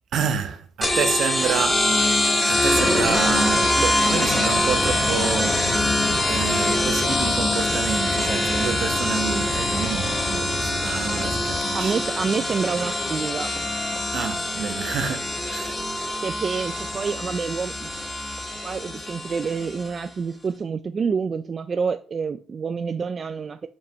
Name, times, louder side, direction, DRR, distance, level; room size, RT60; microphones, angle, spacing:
voice 1, 0.1-6.0 6.3-11.9 14.1-15.8, right 7 dB, 65° right, 1.0 m, -29 dB
sound 1, 0.8-20.0, left 1 dB, 15° left, 1.5 m, -24 dB
sound 2, 4.5-11.6, left 2 dB, 60° left, 1.7 m, -34 dB
voice 2, 11.7-13.7 16.2-17.9 18.6-23.7, right 5 dB, 40° right, 0.4 m, -28 dB
7.3 x 5.2 x 3.1 m
cardioid pair, 90°, 0 cm